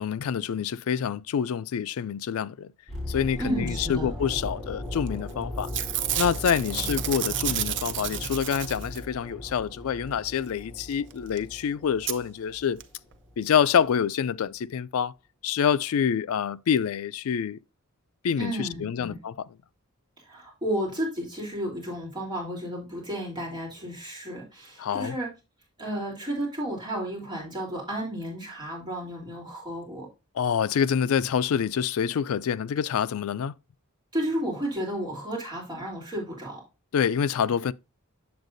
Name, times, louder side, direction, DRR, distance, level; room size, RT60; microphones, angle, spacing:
voice 1, 0.0-2.7 3.1-5.7 6.2-12.8 13.4-15.1 15.4-17.6 18.2-19.3 24.8-25.2 30.4-33.5 36.9-37.7, left 7 dB, 70° left, 0.3 m, -26 dB
sound 1, 2.9-12.9 13.1-13.4, left 1 dB, ahead, 3.3 m, -38 dB
voice 2, 3.4-4.1 18.4-19.2 20.2-25.3 25.8-30.1 34.1-36.6, right 1 dB, 20° right, 3.3 m, -32 dB
Packing tape duct tape / Tearing, 5.1-5.3 5.6-9.2 11.1-11.2 11.4-11.5 12.1-12.2 12.8-12.9 13.1-13.2, right 10 dB, 55° right, 0.6 m, -31 dB
7.9 x 7.3 x 2.6 m
head